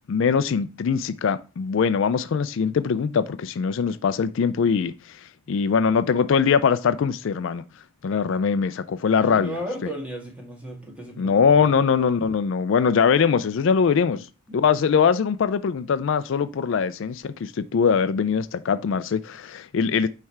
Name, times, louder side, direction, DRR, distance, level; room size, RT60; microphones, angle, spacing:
voice 1, 0.1-5.2 5.5-7.6 8.0-9.9 11.2-14.3 14.5-20.1, left 6 dB, 65° left, 0.4 m, -22 dB
voice 2, 9.2-11.3, equal, 5° right, 1.9 m, -34 dB
9.1 x 3.3 x 4.5 m
head